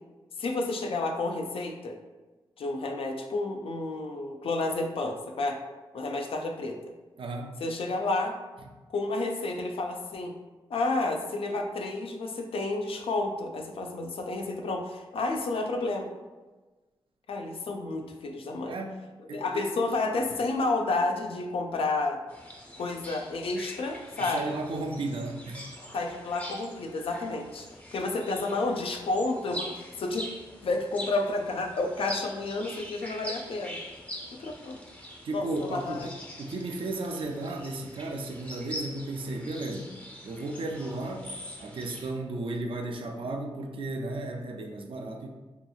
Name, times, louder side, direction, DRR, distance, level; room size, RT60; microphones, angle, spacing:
voice 1, 0.4-2.0 2.6-5.6 5.9-6.9 7.6-8.4 8.9-10.4 10.7-16.1 17.3-18.7 19.3-22.2 22.8-24.4 25.9-30.2 30.6-33.8 34.4-34.8 35.3-36.1, left 2 dB, 70° left, 3 dB, 0.4 m, -30 dB
voice 2, 7.2-7.6 18.7-19.0 19.3-19.6 24.2-25.7 35.2-39.9 40.2-41.3 41.6-45.3, right 2 dB, 60° right, 3 dB, 0.4 m, -34 dB
sound 1, 22.3-42.1, equal, 15° left, 0.6 m, -43 dB
2.8 x 2.7 x 2.3 m, 1.2 s
cardioid pair, 55°, 10 cm